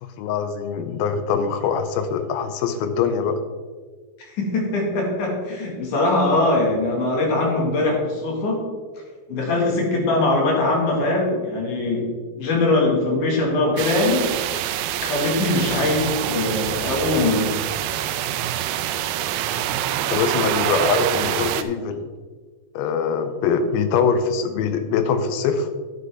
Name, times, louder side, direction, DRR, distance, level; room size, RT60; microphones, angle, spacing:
voice 1, 0.0-3.4 15.8-15.9 20.1-22.1 22.8-25.7, left 6 dB, 80° left, 9 dB, 2.5 m, -23 dB
voice 2, 4.3-8.6 9.3-12.1 12.4-14.3 15.0-17.5, left 2 dB, 60° left, -1 dB, 3.1 m, -21 dB
sound 1, 13.8-21.6, right 11 dB, 80° right, 2.2 m, -25 dB
11.0 x 8.1 x 3.5 m, 1.5 s
omnidirectional pair, 4.4 m